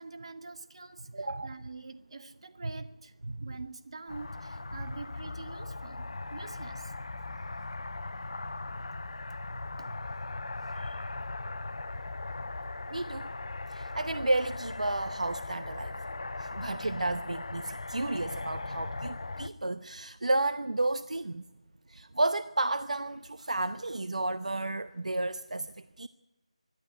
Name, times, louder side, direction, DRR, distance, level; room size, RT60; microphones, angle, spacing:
voice 1, 0.0-3.1 3.4-6.9 9.8-9.9 12.7-12.8 16.5-16.6, right 3 dB, 50° right, 7 dB, 2.0 m, -46 dB
voice 2, 1.2-1.5 2.6-2.7 3.3-3.6 10.8-11.0 12.9-13.3 13.7-15.9 16.4-21.4 21.9-26.1, right 2 dB, 80° right, 12 dB, 0.8 m, -32 dB
sound 1, 4.1-19.5, left 3 dB, 60° left, 1.0 m, -39 dB
24.5 x 11.5 x 9.8 m, 0.96 s
figure-of-eight pair, 170°, 4 cm